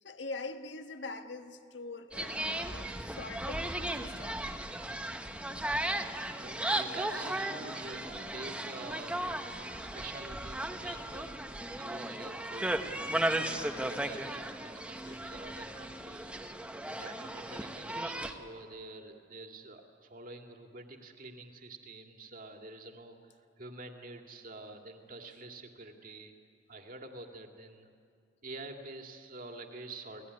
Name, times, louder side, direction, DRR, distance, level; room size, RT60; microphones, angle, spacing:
voice 1, 0.0-4.4 15.0-15.3 16.0-16.1 16.6-16.7, left 3 dB, 65° left, 7 dB, 1.5 m, -44 dB
sound 1, 2.1-18.3, right 1 dB, 5° right, 1.1 m, -36 dB
voice 2, 6.0-9.1 9.4-11.4 11.8-26.3 26.7-27.9 28.4-30.3, right 2 dB, 45° right, 4 dB, 2.4 m, -48 dB
29.5 x 18.5 x 9.8 m, 2.3 s
head